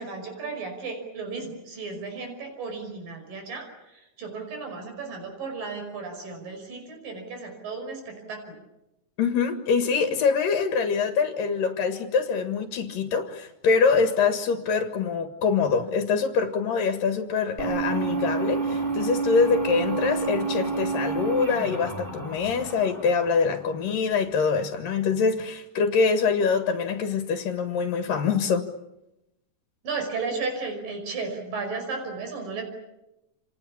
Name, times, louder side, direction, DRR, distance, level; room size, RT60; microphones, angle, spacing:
voice 1, 0.0-3.7 3.9-8.6 29.8-32.6, right 4 dB, 85° right, 4 dB, 7.2 m, -34 dB
voice 2, 9.2-28.7, left 5 dB, 80° left, 6 dB, 3.4 m, -24 dB
sound 1, 17.6-24.0, right 4 dB, 15° right, 3.6 m, -29 dB
29.5 x 27.5 x 7.2 m, 0.91 s
omnidirectional pair, 3.9 m